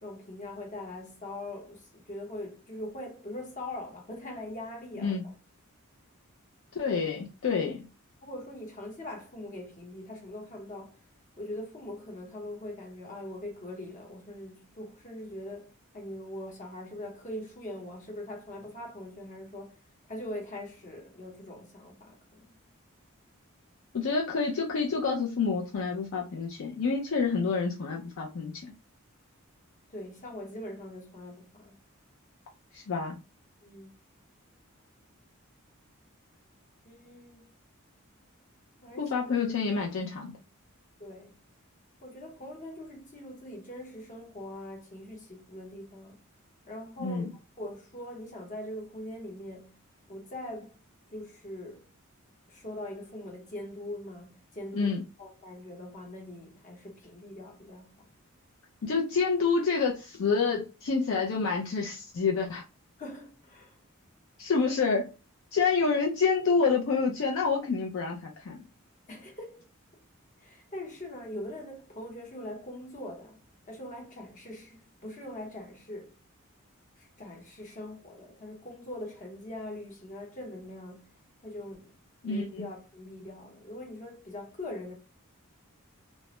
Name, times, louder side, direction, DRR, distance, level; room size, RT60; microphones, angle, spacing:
voice 1, 0.0-5.3 8.2-11.0 11.4-19.8 20.1-22.5 29.9-31.7 33.6-33.9 36.8-37.5 38.8-39.4 41.0-41.4 42.0-46.2 46.7-47.3 47.6-49.8 50.1-50.8 51.1-51.9 52.5-54.9 55.2-58.1 63.0-63.8 69.1-69.7 70.4-73.4 73.6-76.1 77.0-81.1 81.4-81.9 82.2-84.9, left 1 dB, 35° left, 0.8 m, -42 dB
voice 2, 6.7-7.9 23.9-28.7 32.7-33.2 39.0-40.3 47.0-47.3 54.7-55.0 58.8-62.6 64.4-65.1 65.5-68.6 82.2-82.7, left 5 dB, 65° left, 0.4 m, -28 dB
2.2 x 2.0 x 2.9 m
head